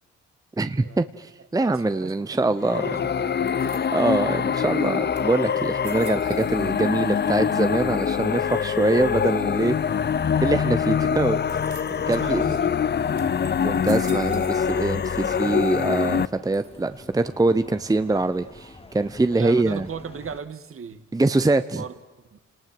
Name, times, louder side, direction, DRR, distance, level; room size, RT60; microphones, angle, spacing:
voice 1, 0.6-2.9 3.9-9.8 10.4-11.4 12.1-12.4 13.6-19.9 21.1-21.8, right 2 dB, 10° right, 0.8 m, -24 dB
voice 2, 1.5-3.7 11.9-12.8 18.4-18.5 19.3-21.1 21.7-22.0 22.3-22.4, right 6 dB, 45° right, 1.9 m, -38 dB
sound 1, 2.6-16.3, left 7 dB, 35° left, 0.7 m, -24 dB
sound 2, 3.5-4.2 4.8-4.9 5.2-6.9 7.2-7.8 8.5-9.0 11.5-12.2 12.7-12.8 13.2-14.9 15.2-15.8 16.5-17.1, right 11 dB, 85° right, 1.8 m, -48 dB
sound 3, 5.8-20.4, left 2 dB, 20° left, 1.9 m, -47 dB
28.5 x 19.5 x 7.7 m
cardioid pair, 90°, 30 cm